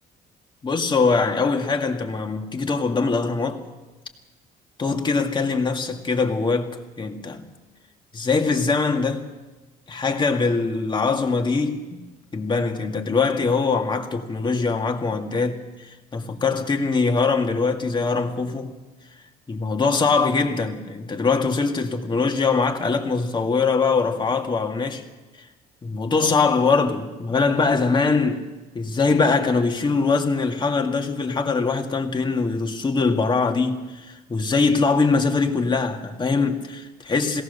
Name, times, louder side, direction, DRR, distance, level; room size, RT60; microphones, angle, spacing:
voice 1, 0.6-3.6 4.8-7.5 8.1-9.3 9.9-12.0 12.3-18.7 19.5-25.0 25.8-28.4 28.7-37.4, left 4 dB, 25° left, 2.1 m, -22 dB
22.5 x 17.5 x 6.8 m
cardioid pair, 110°, 17 cm